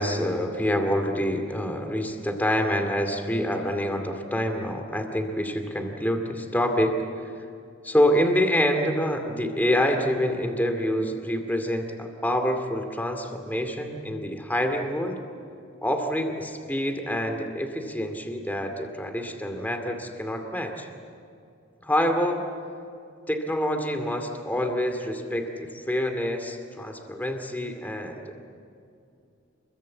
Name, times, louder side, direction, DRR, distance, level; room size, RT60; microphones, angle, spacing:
voice 1, 0.0-7.0 7.8-15.2 15.8-20.9 21.8-22.5 23.3-28.3, equal, 10° left, 6 dB, 2.3 m, -26 dB
29.0 x 22.5 x 8.5 m, 2.5 s
head